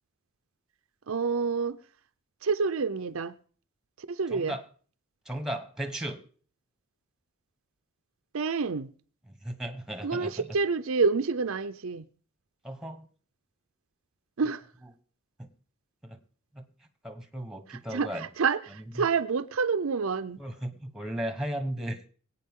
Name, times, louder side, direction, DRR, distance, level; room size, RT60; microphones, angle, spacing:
voice 1, 1.1-1.8 2.4-3.4 4.0-4.6 8.3-8.9 10.0-12.1 14.4-14.6 17.7-20.4, right 5 dB, 65° right, 0.6 m, -28 dB
voice 2, 4.3-4.6 5.2-6.2 9.3-10.4 12.6-13.1 15.4-15.5 16.0-16.2 16.5-16.6 17.0-18.3 18.9-19.0 20.4-22.1, right 1 dB, ahead, 1.3 m, -35 dB
24.0 x 8.8 x 3.7 m
head